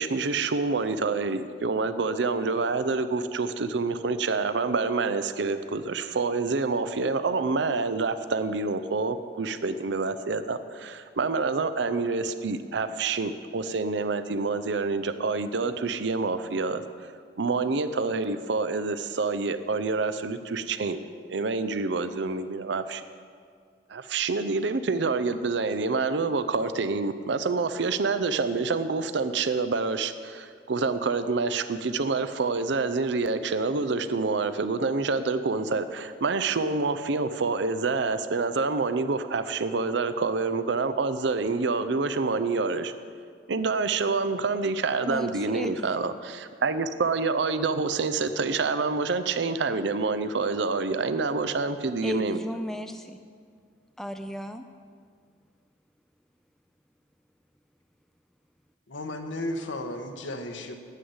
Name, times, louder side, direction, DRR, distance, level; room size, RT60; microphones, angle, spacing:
voice 1, 0.0-16.8 17.4-23.0 23.9-42.9 43.5-52.4, right 4 dB, 70° right, 11 dB, 0.5 m, -27 dB
voice 2, 45.0-46.0 52.0-53.2 54.0-54.6, equal, ahead, 7 dB, 0.4 m, -34 dB
voice 3, 58.9-60.7, left 1 dB, 85° left, 4 dB, 1.2 m, -34 dB
9.8 x 7.9 x 9.6 m, 2.1 s
head